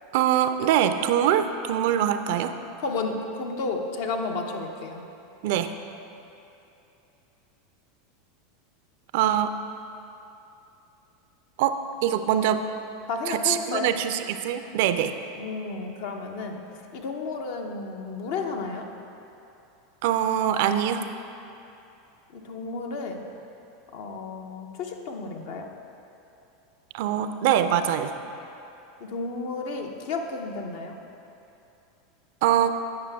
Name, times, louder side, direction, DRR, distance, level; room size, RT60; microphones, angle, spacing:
voice 1, 0.1-2.5 5.4-5.7 9.1-9.5 11.6-11.8 12.0-12.6 13.3-15.1 20.0-21.0 26.9-28.1 32.4-32.8, right 10 dB, 65° right, 9 dB, 0.4 m, -23 dB
voice 2, 2.8-5.0 13.1-13.9 15.3-16.6 16.9-18.9 22.3-23.3 23.9-25.7 29.0-31.0, left 3 dB, 65° left, 3 dB, 0.7 m, -32 dB
8.7 x 5.8 x 3.5 m, 2.8 s
hypercardioid pair, 90°, 0 cm